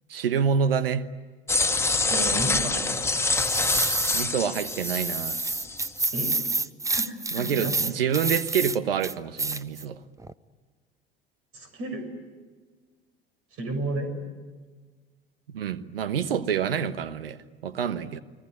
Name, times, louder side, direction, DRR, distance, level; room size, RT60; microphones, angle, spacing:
voice 1, 0.1-1.1 4.1-5.4 7.3-10.0 15.5-17.4 17.6-18.2, right 7 dB, 75° right, 1.1 m, -27 dB
sound 1, 1.5-5.9, left 3 dB, 10° left, 1.7 m, -26 dB
voice 2, 2.1-3.0 6.1-6.3 6.9-7.9 11.5-12.1 13.6-14.1, right 2 dB, 50° right, 6.9 m, -32 dB
sound 2, 3.4-4.3 4.5-8.8 9.0-9.8 10.2-10.3, right 3 dB, 10° right, 0.9 m, -29 dB
29.5 x 20.5 x 9.6 m
figure-of-eight pair, 65°, 29 cm